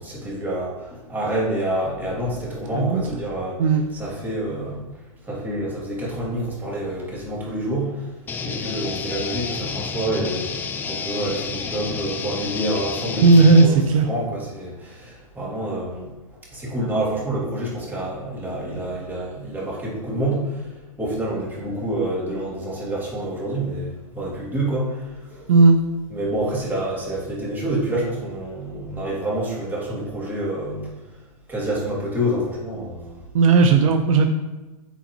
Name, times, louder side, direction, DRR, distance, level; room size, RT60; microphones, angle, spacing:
voice 1, 0.0-3.6 3.9-16.1 16.5-25.5 26.1-31.2 31.5-33.2, right 1 dB, 10° right, -6 dB, 2.6 m, -28 dB
sound 1, 8.3-13.7, left 5 dB, 10° left, 0.4 m, -30 dB
voice 2, 13.2-14.1 25.5-25.8 33.3-34.3, right 4 dB, 65° right, 6 dB, 0.8 m, -14 dB
8.5 x 7.2 x 3.0 m, 1.1 s
hypercardioid pair, 145°, 18 cm